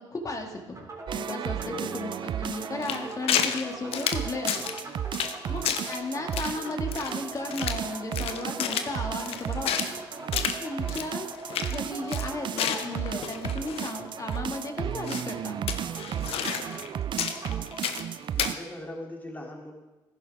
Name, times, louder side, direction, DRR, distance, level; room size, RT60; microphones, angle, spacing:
voice 1, 0.1-1.6 1.9-4.6 5.5-9.9 10.4-15.6, left 2 dB, 35° left, 2 dB, 2.2 m, -35 dB
sound 1, 0.7-17.8, right 2 dB, 30° right, 3.0 m, -42 dB
sound 2, 1.1-18.5, right 10 dB, 50° right, 0.4 m, -34 dB
voice 2, 1.6-2.1 5.4-5.8 10.8-11.1 18.3-19.7, left 1 dB, 15° left, -1 dB, 3.2 m, -40 dB
sound 3, 2.8-3.6 3.9-4.8 5.1-5.4 5.6-6.0 6.3-7.9 8.1-9.9 10.3-10.6 10.9-11.1 11.3-11.8 12.1-14.0 14.3-14.4 15.1-15.3 15.7-16.9 17.2-18.1 18.4-18.5, left 9 dB, 65° left, 0.9 m, -30 dB
14.5 x 11.0 x 3.6 m, 1.1 s
supercardioid pair, 60°, 11 cm